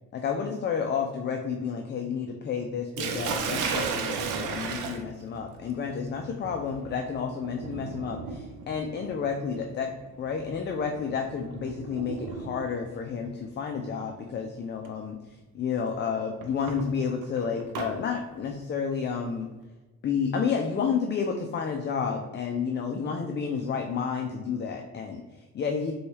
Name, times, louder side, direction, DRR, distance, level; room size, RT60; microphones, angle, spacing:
voice 1, 0.1-9.9 10.2-15.2 15.5-19.5 20.0-25.9, left 6 dB, 35° left, 3 dB, 0.4 m, -30 dB
Sink (filling or washing), 3.0-12.9 14.0-14.3 14.8-14.9 16.4-17.9, right 5 dB, 85° right, 0.6 m, -35 dB
4.0 x 2.3 x 3.2 m, 1.2 s
cardioid pair, 90°, 30 cm